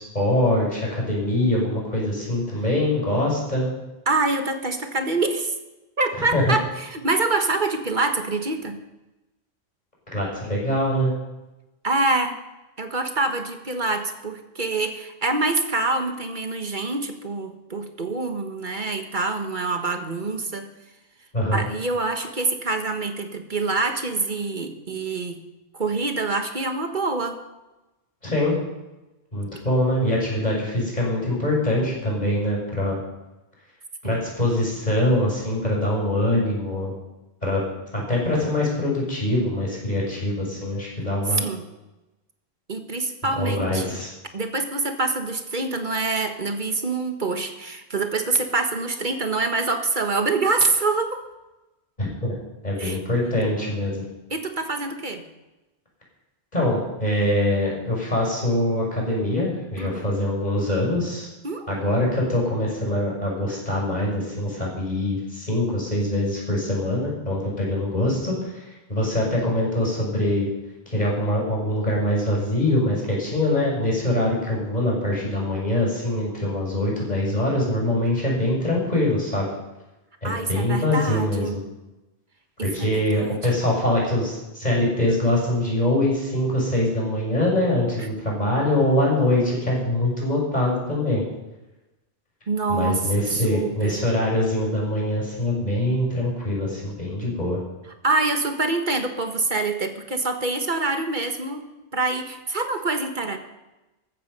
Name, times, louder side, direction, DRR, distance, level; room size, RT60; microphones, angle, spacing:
voice 1, 0.0-3.7 6.1-6.5 10.1-11.1 21.3-21.7 28.2-28.6 29.3-33.0 34.0-36.9 37.4-37.6 37.9-41.4 43.4-44.1 52.0-52.3 52.6-54.0 56.5-61.3 61.7-70.5 70.9-79.5 80.2-81.6 82.6-91.2 92.7-97.6, left 1 dB, 40° left, -3 dB, 6.2 m, -23 dB
voice 2, 4.1-5.5 6.0-8.8 11.8-12.4 12.8-20.7 21.5-25.4 25.7-27.4 34.0-34.2 41.3-41.7 42.7-44.0 44.3-51.2 52.8-53.0 54.3-55.2 59.8-60.0 61.4-61.9 80.2-81.6 82.6-83.4 92.5-94.0 98.0-101.6 101.9-103.4, right 3 dB, 50° right, 6 dB, 1.6 m, -25 dB
15.0 x 13.5 x 5.4 m, 1.0 s
omnidirectional pair, 1.1 m